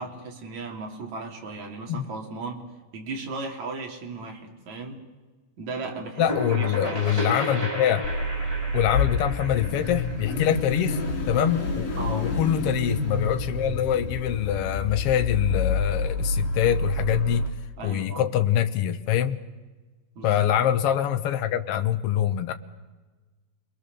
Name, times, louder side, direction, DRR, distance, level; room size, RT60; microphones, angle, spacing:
voice 1, 0.0-2.7 2.9-5.0 5.6-7.2 12.0-12.3 17.8-18.3 20.2-20.4, right 3 dB, 55° right, 1 dB, 4.1 m, -36 dB
sound 1, 5.8-11.4, equal, 10° right, 5.4 m, -34 dB
voice 2, 6.2-8.1 8.7-17.5 17.8-19.4 20.2-22.5, left 10 dB, 65° left, 8 dB, 1.5 m, -24 dB
Car / Idling / Accelerating revving vroom, 8.0-17.5, left 3 dB, 50° left, 4.2 m, -28 dB
29.0 x 22.0 x 6.9 m, 1.3 s
omnidirectional pair, 4.0 m